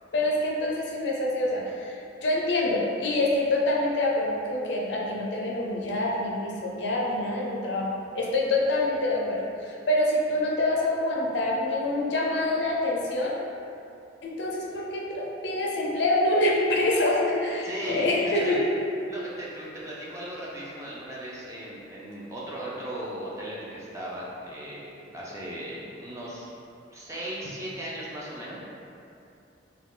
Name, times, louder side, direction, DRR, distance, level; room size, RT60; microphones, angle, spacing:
voice 1, 0.1-7.9 8.1-13.4 14.2-18.7, left 1 dB, 65° left, -3 dB, 0.4 m, -26 dB
voice 2, 17.6-18.6 19.1-26.5 26.9-28.6, right 1 dB, 15° right, -6 dB, 0.4 m, -37 dB
2.3 x 2.3 x 3.6 m, 2.6 s
head